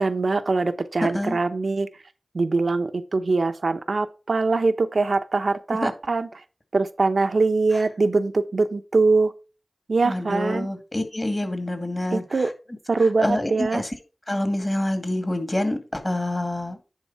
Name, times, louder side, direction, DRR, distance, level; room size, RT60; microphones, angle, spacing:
voice 1, 0.0-1.9 2.3-6.3 6.7-9.3 9.9-10.7 12.1-12.5 12.9-13.8, right 3 dB, 80° right, 0.8 m, -22 dB
voice 2, 1.0-1.4 5.7-5.9 7.7-7.8 10.0-12.5 13.0-13.9 14.3-16.9, left 1 dB, 30° left, 2.3 m, -27 dB
10.5 x 3.7 x 5.7 m
cardioid pair, 45°, 0 cm